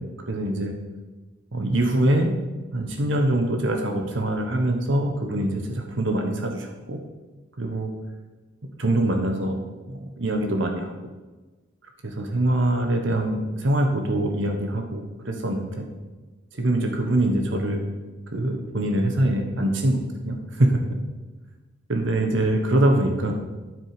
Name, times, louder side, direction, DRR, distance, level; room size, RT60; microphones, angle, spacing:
voice 1, 0.3-0.7 1.5-2.4 2.7-7.0 7.6-7.9 8.8-10.9 12.0-15.9 16.5-17.8 18.3-20.8 21.9-23.3, right 1 dB, 70° right, 4 dB, 1.2 m, -24 dB
9.8 x 7.6 x 5.1 m, 1.2 s
head